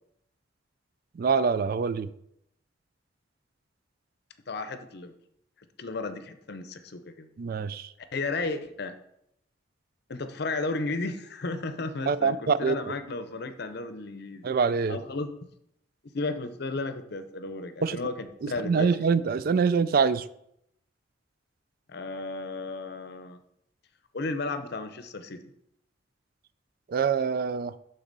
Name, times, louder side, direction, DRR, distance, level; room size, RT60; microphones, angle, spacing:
voice 1, 1.2-2.1 7.4-7.9 12.1-12.9 14.4-15.0 17.8-18.0 18.4-20.2 26.9-27.7, right 5 dB, 50° right, 15 dB, 0.3 m, -25 dB
voice 2, 4.5-5.2 5.8-7.3 8.1-8.9 10.1-14.5 14.9-15.3 16.1-18.9 21.9-23.4 24.1-25.5, left 3 dB, 55° left, 10 dB, 0.7 m, -34 dB
11.5 x 4.0 x 4.0 m, 0.75 s
head